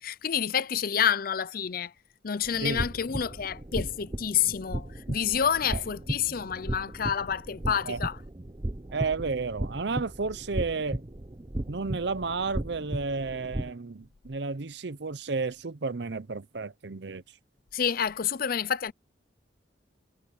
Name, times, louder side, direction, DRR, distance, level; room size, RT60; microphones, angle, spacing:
voice 1, 0.0-1.9 2.2-8.2 17.7-18.9, left 8 dB, 50° left, 0.5 m, -28 dB
sound 1, 2.4-13.7, right 1 dB, 25° right, 0.8 m, -36 dB
voice 2, 8.9-11.0 11.7-17.2, right 4 dB, 65° right, 0.7 m, -32 dB
head